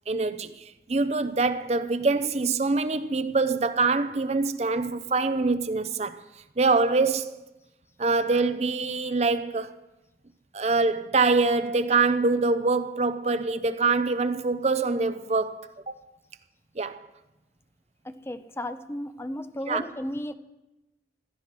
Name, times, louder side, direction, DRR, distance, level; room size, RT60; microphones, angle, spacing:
voice 1, 0.1-6.2 6.6-7.3 8.0-9.7 10.5-15.6 15.9-16.0 16.8-17.0 19.7-19.8, right 3 dB, 35° right, 0.6 m, -24 dB
voice 2, 18.0-20.3, left 1 dB, 15° left, 0.6 m, -34 dB
16.0 x 12.5 x 4.5 m
head